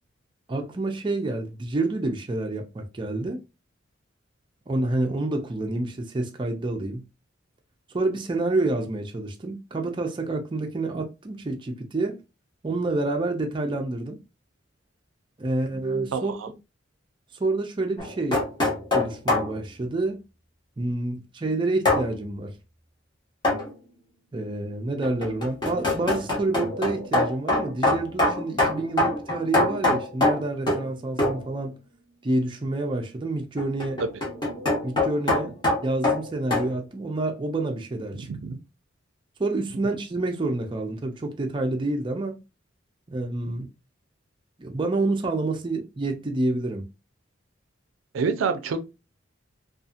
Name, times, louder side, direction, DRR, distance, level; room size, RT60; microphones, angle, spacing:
voice 1, 0.5-3.4 4.7-7.0 7.9-12.2 12.6-14.2 15.4-16.3 17.4-18.4 18.9-20.2 20.8-22.5 24.3-31.7 32.2-34.0 34.8-35.5 35.8-38.3 39.4-42.4 43.1-43.7 44.6-46.9, right 2 dB, 25° right, 0.4 m, -28 dB
voice 2, 16.1-16.5 34.0-34.1 38.1-38.6 48.1-48.8, right 5 dB, 90° right, 0.4 m, -27 dB
sound 1, 18.0-19.5 21.8-22.1 23.4-23.7 25.0-30.9 31.2-31.5 33.6-36.7, left 2 dB, 25° left, 0.9 m, -24 dB
2.7 x 2.4 x 2.4 m
head